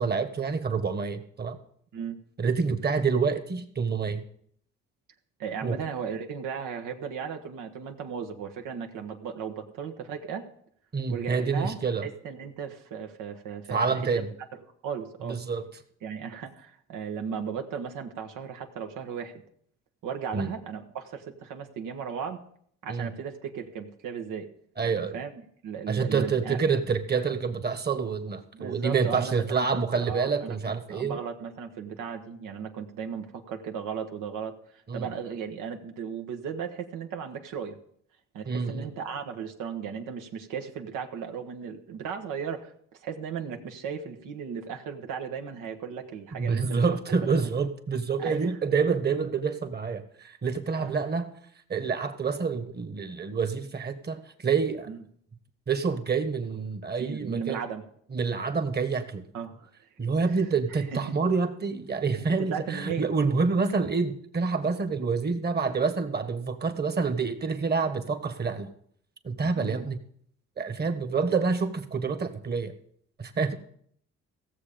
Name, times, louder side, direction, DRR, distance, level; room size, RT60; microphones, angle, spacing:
voice 1, 0.0-1.6 2.4-4.2 5.6-5.8 10.9-12.1 13.7-14.3 15.2-15.7 20.3-20.5 22.9-23.1 24.8-25.2 25.9-31.2 34.9-35.1 38.5-38.9 46.3-51.3 51.7-54.9 55.7-57.6 58.1-59.3 60.0-68.7 69.2-70.0 70.6-72.7 73.2-73.5, right 5 dB, 35° right, 9 dB, 1.4 m, -27 dB
voice 2, 5.4-10.5 11.1-14.3 14.5-15.4 16.0-19.3 20.0-22.4 22.8-24.4 25.1-25.3 25.6-26.6 28.5-37.8 38.3-42.7 43.0-46.8 47.2-47.3 48.2-48.6 50.8-50.9 54.9-55.0 57.0-57.8 59.3-59.7 60.7-61.0 62.2-63.1 69.6-69.9, right 7 dB, 90° right, 5 dB, 1.3 m, -36 dB
16.0 x 7.1 x 5.1 m, 0.64 s
cardioid pair, 90°, 30 cm